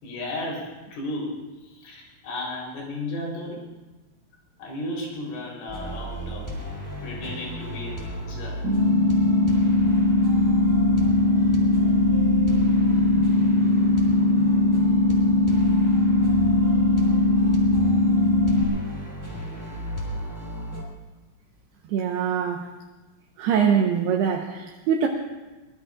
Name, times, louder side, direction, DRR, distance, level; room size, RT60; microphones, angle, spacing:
voice 1, 0.0-3.7 4.6-6.5 7.0-8.6, left 1 dB, 75° left, -3 dB, 6.4 m, -34 dB
sound 1, 5.7-20.8, right 1 dB, 5° left, 2.7 m, -34 dB
sound 2, 8.6-18.6, left 2 dB, 45° right, 3.9 m, -20 dB
voice 2, 21.9-22.7 23.4-25.1, right 7 dB, 75° right, 1 dB, 2.6 m, -23 dB
24.0 x 20.0 x 2.5 m, 1.1 s
omnidirectional pair, 5.7 m